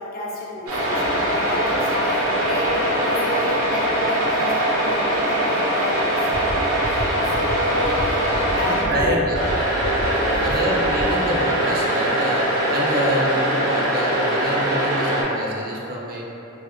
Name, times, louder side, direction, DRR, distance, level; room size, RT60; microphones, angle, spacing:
voice 1, 0.0-8.3 8.6-9.2 10.2-10.5, left 1 dB, 45° left, -4 dB, 0.4 m, -31 dB
sound 1, 0.7-8.8 9.3-15.2, right 1 dB, 80° right, 0.7 m, -22 dB
sound 2, 6.3-6.5 6.8-7.0 7.3-7.5 7.8-8.0 8.3-8.5 8.8-9.0 9.3-9.5 9.8-10.0 10.3-10.5 10.8-11.0, equal, 85° left, 1.0 m, -30 dB
voice 2, 8.6-9.7 10.4-16.2, right 1 dB, 45° right, -3 dB, 0.4 m, -26 dB
3.5 x 2.0 x 3.0 m, 2.9 s
head